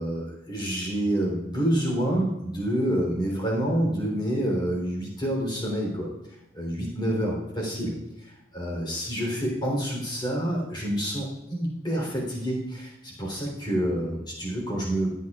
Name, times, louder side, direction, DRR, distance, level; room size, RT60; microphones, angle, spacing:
voice 1, 0.0-6.1 6.5-7.9 8.2-15.1, right 1 dB, 25° left, -2 dB, 3.5 m, -28 dB
23.0 x 8.3 x 2.5 m, 0.87 s
head